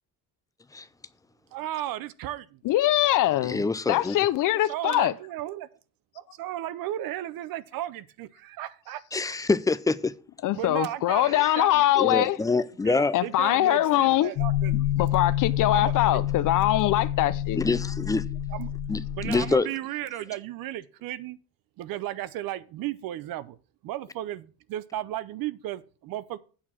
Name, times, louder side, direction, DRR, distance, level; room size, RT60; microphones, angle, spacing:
voice 1, 1.5-2.6 4.5-5.7 6.1-9.0 10.5-12.2 12.8-14.7 15.7-16.3 17.6-17.7 18.5-18.7 19.2-21.4 21.8-23.6 23.8-26.4, right 13 dB, 70° right, 0.8 m, -35 dB
voice 2, 2.6-5.1 10.4-12.4 13.1-14.3 14.7-17.6, left 14 dB, 60° left, 0.6 m, -23 dB
voice 3, 3.4-4.2 9.1-10.1 11.4-11.5 12.0-13.2 17.5-18.2 18.9-19.7, left 3 dB, 10° left, 0.4 m, -26 dB
sound 1, 14.4-19.5, left 12 dB, 85° left, 1.1 m, -28 dB
8.6 x 4.8 x 7.2 m
cardioid pair, 140°, 36 cm